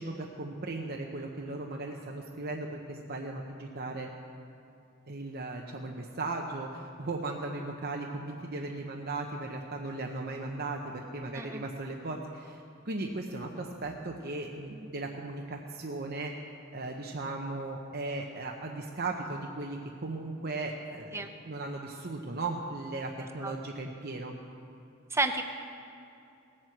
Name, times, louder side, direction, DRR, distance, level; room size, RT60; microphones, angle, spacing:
voice 1, 0.0-4.1 5.1-16.3 16.7-24.4, right 2 dB, 45° right, 1 dB, 0.9 m, -37 dB
voice 2, 25.1-25.4, right 2 dB, 10° right, 7 dB, 0.7 m, -30 dB
18.5 x 7.5 x 7.9 m, 2.6 s
head